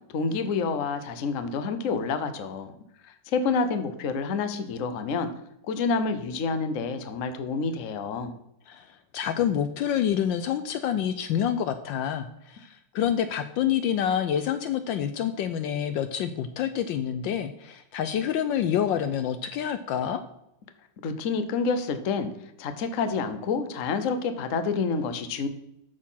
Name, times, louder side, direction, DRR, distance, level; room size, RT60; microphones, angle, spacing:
voice 1, 0.1-2.7 3.0-5.3 5.7-8.3 21.0-22.3 22.6-25.5, left 4 dB, 50° left, 9 dB, 1.0 m, -28 dB
voice 2, 9.1-20.2, left 9 dB, 75° left, 10 dB, 1.2 m, -27 dB
13.0 x 4.4 x 5.6 m, 0.80 s
omnidirectional pair, 2.2 m